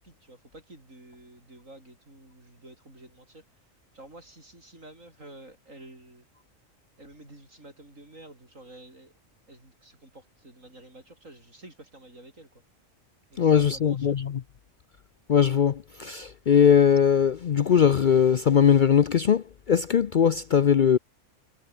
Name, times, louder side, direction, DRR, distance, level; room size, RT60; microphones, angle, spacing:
voice 1, 0.0-3.5 3.9-6.3 7.0-9.1 9.5-12.6 13.3-14.2, right 1 dB, 75° right, 8.1 m, -50 dB
voice 2, 13.4-14.4 15.3-21.0, left 8 dB, 50° left, 0.6 m, -20 dB
omnidirectional pair, 1.4 m